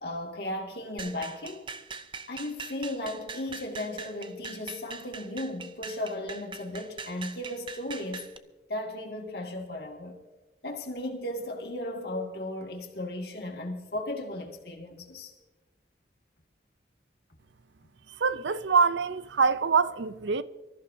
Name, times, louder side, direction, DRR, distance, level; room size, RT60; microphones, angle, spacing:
voice 1, 0.0-1.7 2.3-8.3 8.7-10.2 10.6-15.3, left 1 dB, 60° left, 2.2 m, -35 dB
sound 1, 1.0-8.4, right 5 dB, 25° right, 0.6 m, -42 dB
voice 2, 18.2-20.4, right 5 dB, 85° right, 0.6 m, -24 dB
25.0 x 14.0 x 2.8 m
head